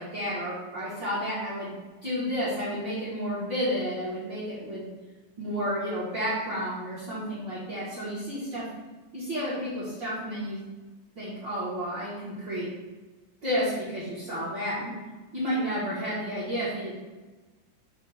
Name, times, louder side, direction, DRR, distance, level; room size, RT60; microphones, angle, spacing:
voice 1, 0.0-1.8 2.0-4.9 5.4-8.6 9.1-10.6 11.2-12.7 13.4-14.9 15.3-16.9, equal, 40° right, -10 dB, 1.9 m, -31 dB
6.2 x 3.1 x 5.8 m, 1.2 s
omnidirectional pair, 4.4 m